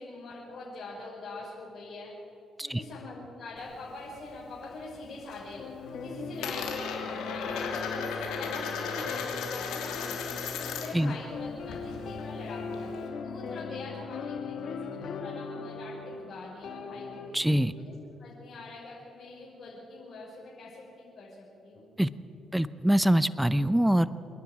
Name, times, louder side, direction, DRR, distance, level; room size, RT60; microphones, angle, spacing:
voice 1, 0.0-2.1 2.6-5.6 5.9-17.4 17.7-21.3 21.6-21.9, left 2 dB, 55° left, -7 dB, 6.0 m, -43 dB
Coin (dropping), 3.6-4.7 5.0-5.5 5.8-11.1 11.4-13.1, left 6 dB, 90° left, 3.0 m, -36 dB
sound 1, 5.6-17.3, left 5 dB, 70° left, 1.9 m, -39 dB
voice 2, 17.3-17.7 22.0-22.1 22.5-24.1, right 1 dB, 5° right, 14 dB, 0.6 m, -24 dB
27.0 x 10.5 x 9.5 m, 2.8 s
cardioid pair, 90°, 0 cm